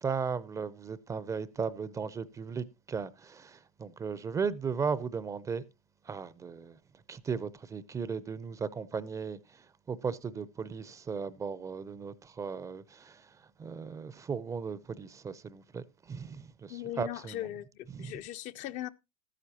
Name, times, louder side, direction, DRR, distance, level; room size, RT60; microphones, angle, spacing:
voice 1, 0.0-3.5 3.8-5.6 6.1-6.7 7.1-9.4 9.9-12.8 13.6-17.4 17.9-18.1, right 5 dB, 15° right, 0.5 m, -36 dB
voice 2, 16.7-18.9, left 13 dB, 40° left, 0.5 m, -39 dB
13.0 x 10.0 x 2.8 m
hypercardioid pair, 95°, 18 cm